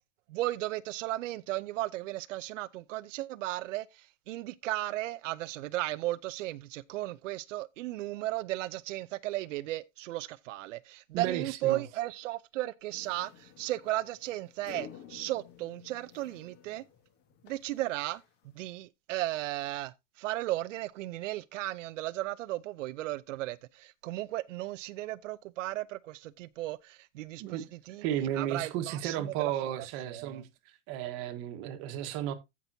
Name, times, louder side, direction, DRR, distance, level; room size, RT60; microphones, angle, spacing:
voice 1, 0.3-16.8 17.4-18.2 18.5-29.7 30.0-30.4, right 16 dB, 90° right, 0.6 m, -35 dB
voice 2, 11.1-11.8 27.4-27.7 28.0-30.5 30.9-32.3, right 11 dB, 35° right, 1.4 m, -33 dB
sound 1, 12.9-18.7, left 9 dB, 30° left, 1.2 m, -52 dB
15.0 x 6.1 x 2.7 m
supercardioid pair, 170°, 37 cm